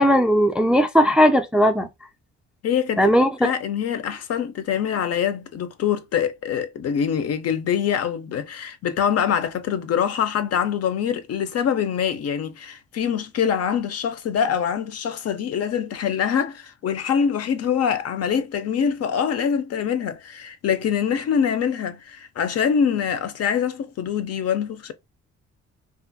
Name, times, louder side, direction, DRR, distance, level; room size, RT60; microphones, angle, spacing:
voice 1, 0.0-1.9 3.0-3.3, equal, 5° right, 0.3 m, -17 dB
voice 2, 2.6-3.1 3.4-24.9, left 8 dB, 55° left, 0.5 m, -24 dB
2.4 x 2.4 x 2.6 m
cardioid pair, 90°, 30 cm